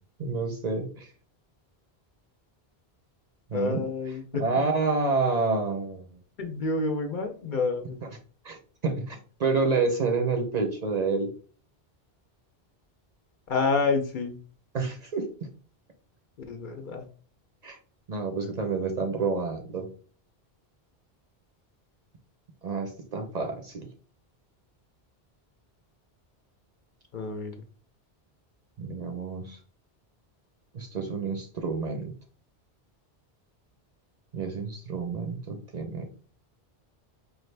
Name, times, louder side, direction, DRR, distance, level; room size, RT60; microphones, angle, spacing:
voice 1, 0.2-1.1 3.5-3.9 4.4-6.0 8.4-11.3 14.7-15.3 17.6-17.8 18.1-19.9 22.6-23.9 28.8-29.6 30.7-32.1 34.3-36.1, right 4 dB, 50° right, 4 dB, 0.6 m, -28 dB
voice 2, 3.5-4.7 6.4-8.0 13.5-14.4 16.5-17.1 27.1-27.5, left 3 dB, 55° left, 5 dB, 0.7 m, -28 dB
4.8 x 2.5 x 3.2 m, 0.40 s
omnidirectional pair, 1.1 m